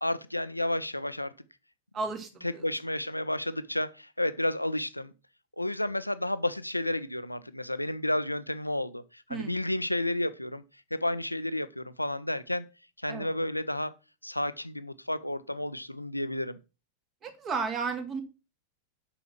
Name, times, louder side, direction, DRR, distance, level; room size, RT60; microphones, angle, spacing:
voice 1, 0.0-1.3 2.4-5.1 5.6-10.6 10.9-12.7 13.0-13.9 14.2-16.6, left 1 dB, 85° left, 0.6 m, -31 dB
voice 2, 1.9-2.6 9.3-9.6 13.1-13.3 17.2-18.2, right 5 dB, 30° right, 2.2 m, -33 dB
6.9 x 6.1 x 7.2 m
figure-of-eight pair, 90°, 0 cm